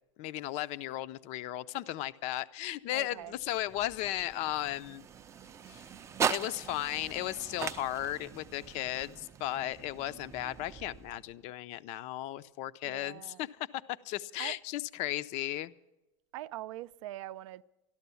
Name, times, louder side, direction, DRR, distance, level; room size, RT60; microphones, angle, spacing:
voice 1, 0.2-5.0 5.7-5.8 6.3-13.5 13.9-15.7, left 14 dB, 45° left, 0.5 m, -35 dB
voice 2, 2.9-3.3 12.8-13.5 14.4-14.6 16.3-17.6, right 15 dB, 75° right, 0.4 m, -43 dB
sound 1, 3.2-11.5, right 7 dB, 15° right, 0.4 m, -40 dB
13.5 x 12.0 x 6.9 m
supercardioid pair, 140°, 16 cm